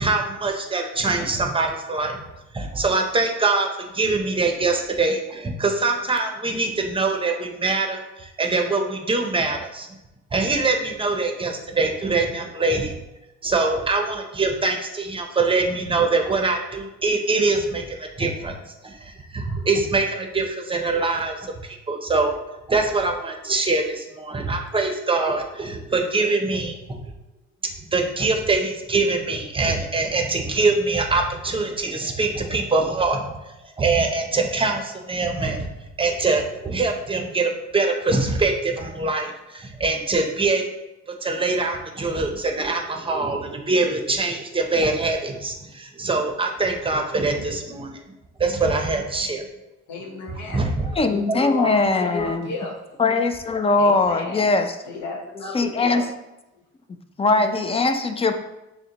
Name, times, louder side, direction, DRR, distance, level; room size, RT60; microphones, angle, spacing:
voice 1, 0.0-2.2 2.5-9.9 10.3-12.9 13.4-21.5 21.9-22.4 22.7-26.8 27.9-35.7 36.0-40.6 41.2-47.9 48.4-49.4 50.5-50.9 51.3-51.4, right 3 dB, 20° right, 3 dB, 0.6 m, -23 dB
voice 2, 49.9-50.6 50.9-52.8 53.8-54.5 54.9-56.0, left 3 dB, 90° left, -1 dB, 1.1 m, -33 dB
voice 3, 50.8-52.5 53.0-54.8 55.5-56.0 57.2-58.3, left 3 dB, 20° left, 8 dB, 0.3 m, -21 dB
6.4 x 2.2 x 2.9 m, 0.94 s
cardioid pair, 90°, 30 cm